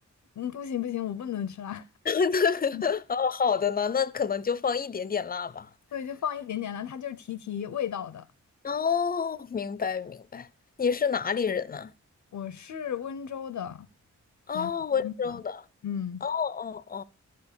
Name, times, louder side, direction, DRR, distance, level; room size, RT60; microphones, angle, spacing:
voice 1, 0.4-1.9 2.7-2.8 5.9-8.3 12.3-13.9 14.5-15.3 15.8-16.2, left 9 dB, 75° left, 0.6 m, -34 dB
voice 2, 2.1-5.7 8.6-10.5 10.8-11.9 14.5-15.6 16.2-17.0, left 6 dB, 30° left, 0.5 m, -28 dB
13.5 x 5.2 x 6.5 m
wide cardioid pair, 105°, 29 cm